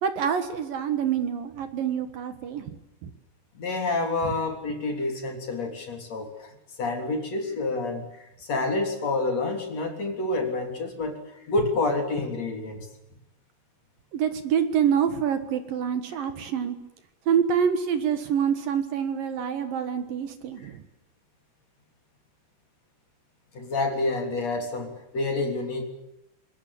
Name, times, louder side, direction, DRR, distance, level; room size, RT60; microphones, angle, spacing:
voice 1, 0.0-2.7 3.0-3.1 4.2-4.3 14.1-16.8 17.3-20.8, right 8 dB, 65° right, 9 dB, 2.3 m, -26 dB
voice 2, 3.6-11.2 11.5-12.9 23.5-25.8, left 2 dB, 35° left, 4 dB, 3.9 m, -28 dB
27.0 x 21.5 x 8.6 m, 0.85 s
omnidirectional pair, 5.9 m